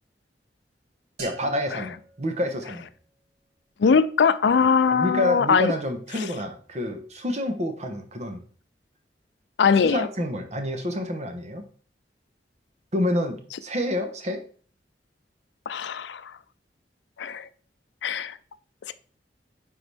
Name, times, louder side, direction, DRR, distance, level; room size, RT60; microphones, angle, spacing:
voice 1, 1.2-2.9 4.9-8.4 9.8-11.6 12.9-14.4, left 1 dB, 40° right, 1.1 m, -28 dB
sound 1, 1.2-3.2, right 3 dB, 65° right, 2.0 m, -45 dB
voice 2, 3.8-5.7 9.6-10.1 15.7-16.3 17.2-17.5 18.0-18.4 18.9-19.0, left 5 dB, 80° left, 0.4 m, -21 dB
9.3 x 3.9 x 3.4 m
head